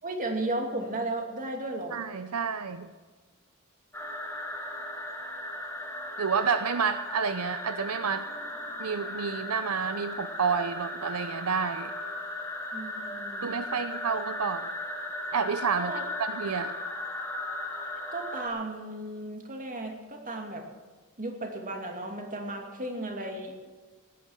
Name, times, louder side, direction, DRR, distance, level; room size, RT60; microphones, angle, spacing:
voice 1, 0.0-2.0 12.7-13.6 15.8-16.0 18.1-20.6 21.2-23.6, right 2 dB, 40° right, 3 dB, 2.5 m, -35 dB
voice 2, 1.9-2.9 6.2-8.2 8.8-11.9 13.4-14.7 15.3-16.7, right 6 dB, 85° right, 11 dB, 0.7 m, -29 dB
sound 1, 3.9-18.5, left 1 dB, 10° left, 2.7 m, -37 dB
17.0 x 10.0 x 7.4 m, 1.4 s
head